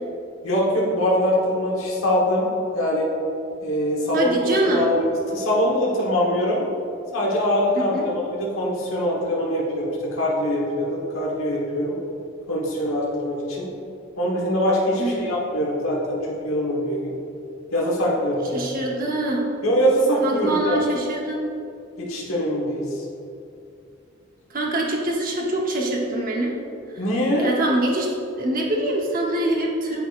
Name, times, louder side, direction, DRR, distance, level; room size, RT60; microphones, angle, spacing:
voice 1, 0.4-2.5 2.7-3.1 3.6-4.4 4.7-6.7 7.1-12.0 12.5-13.7 14.2-17.1 17.7-18.7 19.6-20.8 22.0-23.0 27.0-27.5, equal, 70° left, -4 dB, 1.2 m, -23 dB
voice 2, 4.1-4.8 7.8-8.1 15.0-15.4 18.5-19.5 20.2-21.4 24.5-26.6 27.4-28.1 28.4-30.0, right 1 dB, 40° right, -1 dB, 0.9 m, -24 dB
9.0 x 4.9 x 2.5 m, 2.6 s
head